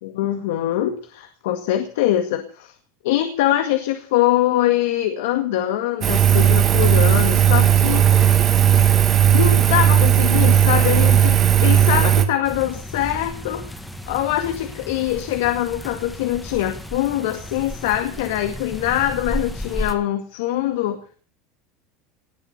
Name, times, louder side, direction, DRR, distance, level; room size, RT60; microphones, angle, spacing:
voice 1, 0.0-2.7 3.0-8.5 9.3-13.7 14.1-21.0, left 13 dB, 80° left, 7 dB, 1.9 m, -23 dB
Engine, 6.0-12.2, right 9 dB, 30° right, 1.8 m, -15 dB
sound 1, 12.4-19.9, left 1 dB, 5° left, 1.8 m, -33 dB
19.5 x 8.6 x 8.2 m, 0.44 s
supercardioid pair, 160°, 0 cm